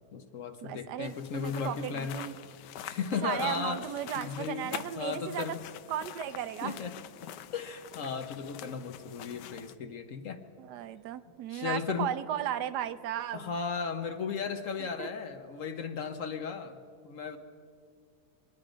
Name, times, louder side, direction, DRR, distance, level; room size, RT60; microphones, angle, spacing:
voice 1, 0.1-2.2 2.8-3.8 4.2-5.6 6.6-10.4 11.5-12.1 13.3-17.4, left 6 dB, 60° left, 7 dB, 1.0 m, -36 dB
voice 2, 0.6-2.3 3.2-5.6 5.9-6.8 10.6-13.5 14.8-15.1, right 11 dB, 80° right, 13 dB, 1.2 m, -35 dB
sound 1, 1.0-9.7, left 11 dB, 90° left, 1.2 m, -46 dB
25.5 x 10.5 x 5.0 m, 2.4 s
omnidirectional pair, 1.8 m